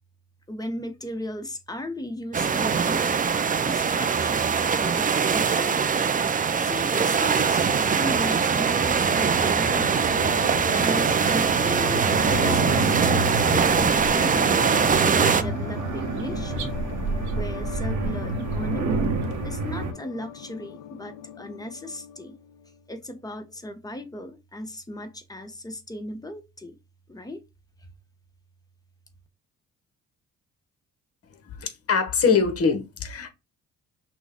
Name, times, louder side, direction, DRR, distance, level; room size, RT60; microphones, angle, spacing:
voice 1, 0.5-3.1 3.6-5.8 6.6-10.1 10.7-12.1 12.3-14.8 15.1-16.7 17.3-19.0 19.4-22.3 22.9-26.8 27.1-27.4, left 1 dB, 10° left, 1.0 m, -36 dB
sound 1, 2.3-15.4, right 6 dB, 25° right, 0.5 m, -22 dB
sound 2, 7.4-19.9, right 3 dB, 75° right, 1.1 m, -30 dB
sound 3, 9.9-22.8, left 11 dB, 75° left, 0.5 m, -38 dB
voice 2, 31.5-33.3, left 5 dB, 50° left, 1.3 m, -23 dB
6.0 x 2.3 x 3.6 m
cardioid pair, 90°, 30 cm